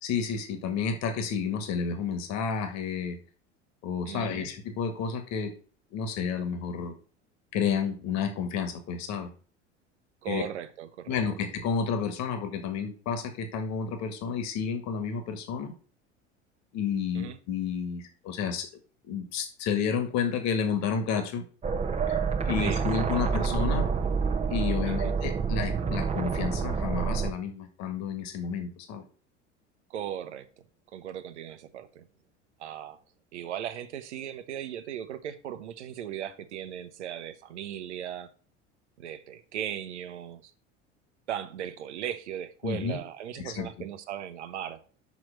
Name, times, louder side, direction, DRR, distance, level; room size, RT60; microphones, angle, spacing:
voice 1, 0.0-3.2 3.8-5.5 5.9-6.9 7.5-9.3 10.3-10.4 11.1-15.7 16.7-18.7 19.0-21.4 22.1-22.2 22.5-23.9 24.5-29.0 42.6-43.0 43.4-43.7, left 6 dB, 50° left, 1.9 m, -31 dB
voice 2, 4.1-4.5 10.2-11.2 17.1-17.4 22.6-23.2 24.9-25.1 29.9-30.4 30.9-32.1 32.6-33.0 33.3-38.3 39.0-40.5 41.3-44.8, right 10 dB, 70° right, 1.0 m, -37 dB
sound 1, 21.6-27.3, right 5 dB, 20° right, 1.0 m, -28 dB
6.0 x 6.0 x 6.4 m
figure-of-eight pair, 70°, 36 cm